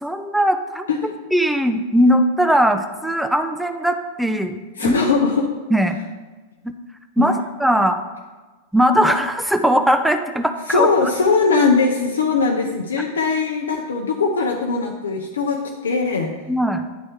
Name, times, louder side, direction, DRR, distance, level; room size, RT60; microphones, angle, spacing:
voice 1, 0.0-0.9 1.3-4.6 4.8-5.0 5.7-6.0 6.6-6.7 7.2-8.0 8.7-11.1 16.5-16.8, equal, ahead, 7 dB, 0.5 m, -19 dB
voice 2, 4.8-5.5 7.2-7.3 10.7-16.3, left 4 dB, 70° left, 0 dB, 0.7 m, -20 dB
10.0 x 4.2 x 4.7 m, 1.3 s
figure-of-eight pair, 90°, 0 cm